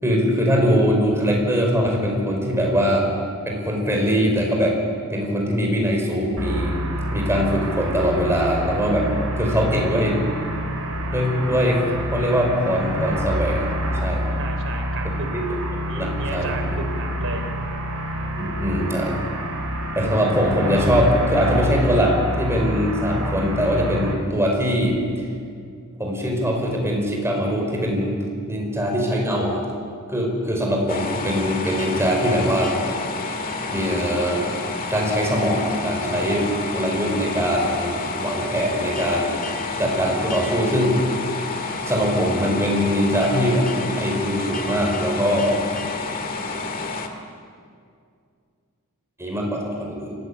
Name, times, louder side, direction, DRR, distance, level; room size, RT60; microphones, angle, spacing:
voice 1, 0.0-3.1 3.4-4.7 5.1-6.8 7.1-9.1 9.4-10.2 11.1-11.8 12.1-13.7 14.0-14.3 15.9-16.5 18.4-19.2 19.9-25.0 26.0-28.2 28.4-29.6 30.1-32.7 33.7-34.5 34.9-39.3 39.8-41.0 41.8-45.6 49.2-50.2, equal, 10° right, 0 dB, 5.1 m, -22 dB
sound 1, 6.4-24.1, equal, 85° right, 3.7 m, -27 dB
voice 2, 14.4-15.3 15.8-17.5, right 2 dB, 65° right, 5 dB, 3.4 m, -33 dB
sound 2, 30.9-47.1, left 3 dB, 40° left, 1.9 m, -29 dB
24.0 x 16.0 x 9.9 m, 2.3 s
head